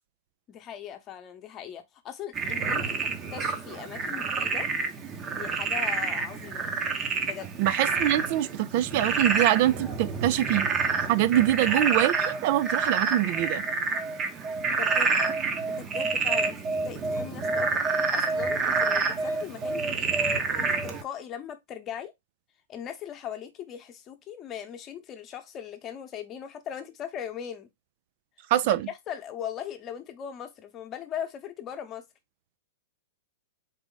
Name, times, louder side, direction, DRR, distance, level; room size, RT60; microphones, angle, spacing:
voice 1, 0.5-4.7 5.3-6.7 7.2-7.6 14.7-15.2 15.7-20.1 20.3-22.1 22.7-27.7 28.5-28.8 29.1-32.0, left 9 dB, 30° left, 0.9 m, -39 dB
Frog, 2.4-21.0, right 4 dB, 25° right, 0.8 m, -28 dB
voice 2, 7.6-10.7 11.1-13.6 28.5-28.9, right 13 dB, 50° right, 0.3 m, -24 dB
4.0 x 2.5 x 3.9 m
hypercardioid pair, 135°, 0 cm